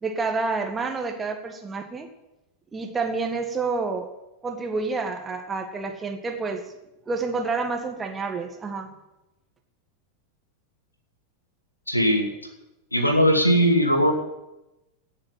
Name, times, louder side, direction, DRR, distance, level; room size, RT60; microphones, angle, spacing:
voice 1, 0.0-2.1 2.7-4.1 4.4-6.7 7.1-8.9, right 4 dB, 15° right, 5 dB, 1.8 m, -29 dB
voice 2, 11.9-12.3 12.9-14.1, equal, 85° left, 3 dB, 2.7 m, -19 dB
17.5 x 6.9 x 9.2 m, 0.97 s
figure-of-eight pair, 90°, 0 cm